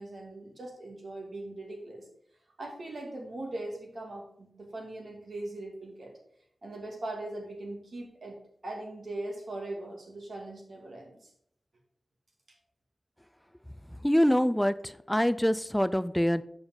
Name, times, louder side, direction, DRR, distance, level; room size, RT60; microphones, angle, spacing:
voice 1, 0.0-2.1 2.6-6.1 6.6-8.4 8.6-11.3, right 2 dB, 65° right, 0 dB, 2.3 m, -40 dB
voice 2, 14.0-16.4, equal, 5° left, 15 dB, 0.4 m, -25 dB
7.2 x 5.2 x 5.3 m, 0.69 s
wide cardioid pair, 105°, 0 cm